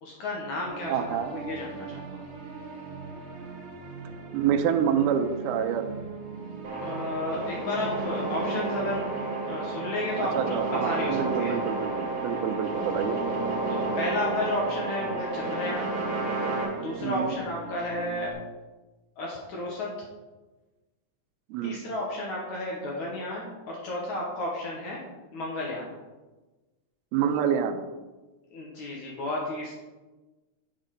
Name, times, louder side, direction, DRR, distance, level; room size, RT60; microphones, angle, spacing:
voice 1, 0.0-2.2 6.8-9.0 9.5-11.6 13.7-15.9 16.8-18.4 19.2-19.9 21.6-25.0 25.3-25.9 28.5-29.7, left 2 dB, 70° left, -3 dB, 1.9 m, -32 dB
sound 1, 0.7-18.3, right 4 dB, 60° right, 1.4 m, -40 dB
voice 2, 0.9-1.3 4.3-5.9 10.3-13.2 17.0-17.3 21.5-21.8 27.1-27.8, right 8 dB, 80° right, 6 dB, 2.3 m, -27 dB
sound 2, 6.6-16.6, right 3 dB, 40° right, 1.7 m, -31 dB
8.1 x 6.6 x 3.9 m, 1.2 s
omnidirectional pair, 4.8 m